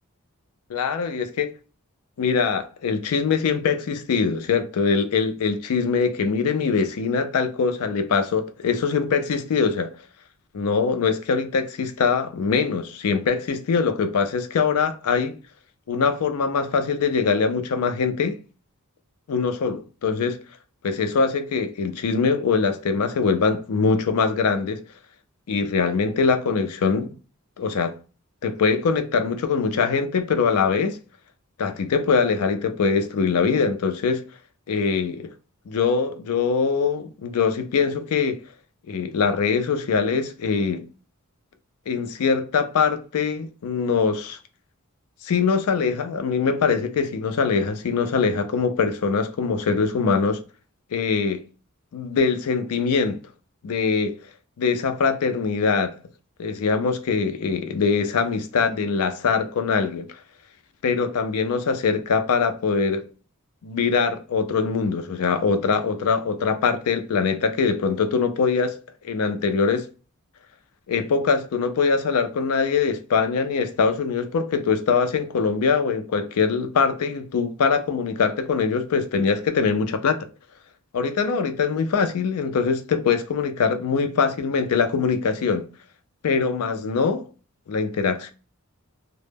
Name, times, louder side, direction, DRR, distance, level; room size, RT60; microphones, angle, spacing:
voice 1, 0.7-1.5 2.2-9.9 10.5-15.3 15.9-18.4 19.3-20.4 20.8-24.8 25.5-27.1 27.6-28.0 28.4-31.0 31.6-34.2 34.7-35.3 35.7-38.4 38.9-40.8 41.9-44.4 45.2-50.4 50.9-51.4 51.9-53.2 53.6-54.1 54.6-55.9 56.4-60.1 60.8-63.0 63.6-68.8 69.0-69.9 70.9-80.3 80.9-85.7 86.2-87.2 87.7-88.3, left 5 dB, 80° left, 0.4 m, -23 dB
2.1 x 2.0 x 3.2 m
head